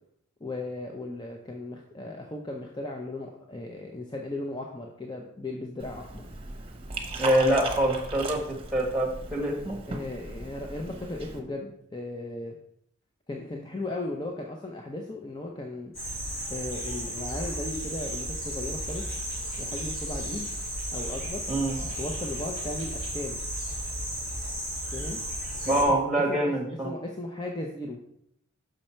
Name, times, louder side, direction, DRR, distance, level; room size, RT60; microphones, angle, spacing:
voice 1, 0.4-6.2 9.9-12.6 13.3-15.9 16.5-19.1 19.6-20.5 20.9-21.4 21.8-23.4 24.9-25.2 25.8-25.9 26.3-26.4 26.8-28.0, left 2 dB, 20° left, 1 dB, 0.6 m, -36 dB
Liquid, 5.8-11.4, right 3 dB, 25° right, 0.9 m, -38 dB
voice 2, 7.2-8.4 8.7-9.8 21.5-21.8 25.6-26.9, right 1 dB, ahead, -1 dB, 1.4 m, -25 dB
sound 1, 15.9-25.8, right 1 dB, 45° left, 2.9 m, -34 dB
6.3 x 5.5 x 4.4 m, 0.72 s
head